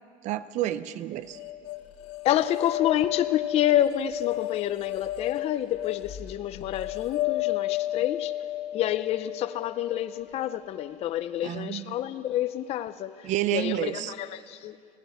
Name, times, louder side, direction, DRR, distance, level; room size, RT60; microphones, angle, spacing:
voice 1, 0.2-1.4 11.4-11.9 13.2-14.1, right 13 dB, 45° right, 0.6 m, -30 dB
sound 1, 1.3-10.5, left 15 dB, 60° left, 0.9 m, -33 dB
voice 2, 2.2-8.3 8.7-14.8, left 12 dB, 35° left, 0.5 m, -28 dB
17.0 x 15.0 x 9.9 m
cardioid pair, 155°, 17 cm